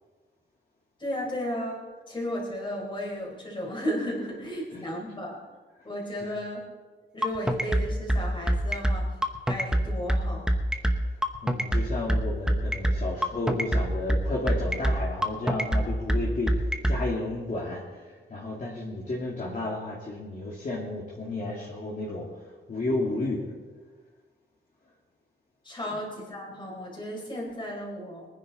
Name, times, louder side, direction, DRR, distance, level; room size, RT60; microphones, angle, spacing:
voice 1, 1.0-1.8 2.1-5.4 5.8-6.7 7.1-9.1 9.5-10.5 25.6-28.3, equal, 25° left, -2 dB, 4.0 m, -34 dB
sound 1, 7.2-17.0, right 1 dB, 5° right, 1.0 m, -24 dB
voice 2, 11.4-22.3 22.7-23.4 25.8-26.0, left 2 dB, 40° left, -6 dB, 2.3 m, -32 dB
22.5 x 10.0 x 4.1 m, 1.4 s
wide cardioid pair, 150°, 20 cm